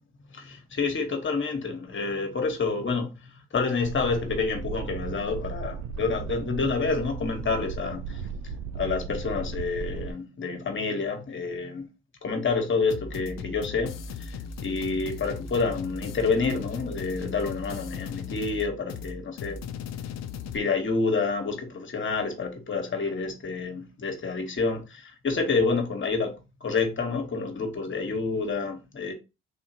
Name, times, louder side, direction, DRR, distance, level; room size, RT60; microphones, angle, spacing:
voice 1, 0.3-3.1 3.5-8.2 8.7-11.9 12.2-14.4 14.6-19.6 20.5-29.1, left 4 dB, 40° left, 1.3 m, -28 dB
sound 1, 3.8-10.1, right 5 dB, 70° right, 0.5 m, -36 dB
sound 2, 12.9-20.6, left 5 dB, 65° left, 0.5 m, -37 dB
3.7 x 2.7 x 2.8 m
supercardioid pair, 55°, 29 cm